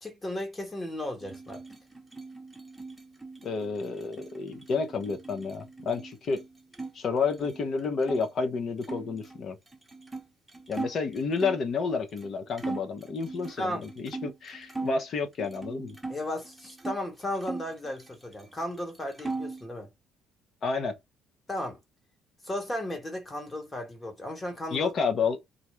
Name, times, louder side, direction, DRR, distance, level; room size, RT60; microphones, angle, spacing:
voice 1, 0.0-1.6 13.6-13.9 16.1-19.9 21.5-21.8 22.4-24.9, left 1 dB, 20° left, 1.2 m, -35 dB
sound 1, 1.2-6.9 7.2-8.2 8.8-11.7 12.2-12.3 12.6-15.0 15.4-17.0 17.4-18.5 18.8-19.7, right 3 dB, 10° right, 0.9 m, -40 dB
voice 2, 3.4-6.4 6.9-9.6 10.7-16.0 20.6-21.0 24.7-25.4, left 4 dB, 55° left, 0.8 m, -30 dB
2.4 x 2.2 x 3.1 m
supercardioid pair, 85°, 0 cm